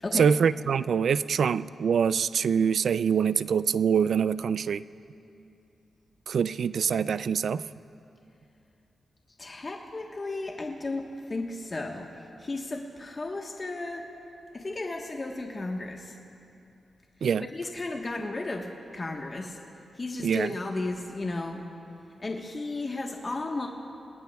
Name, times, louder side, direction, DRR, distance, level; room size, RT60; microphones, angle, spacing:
voice 1, 0.1-4.8 6.3-7.6 17.2-17.4 20.2-20.5, right 7 dB, 75° right, 16 dB, 0.3 m, -24 dB
voice 2, 9.4-14.0 14.5-16.2 17.5-18.7 18.9-19.6 20.0-21.6 22.2-23.7, left 2 dB, 35° left, 0 dB, 1.2 m, -34 dB
29.0 x 19.0 x 2.3 m, 2.7 s
cardioid pair, 80°, 0 cm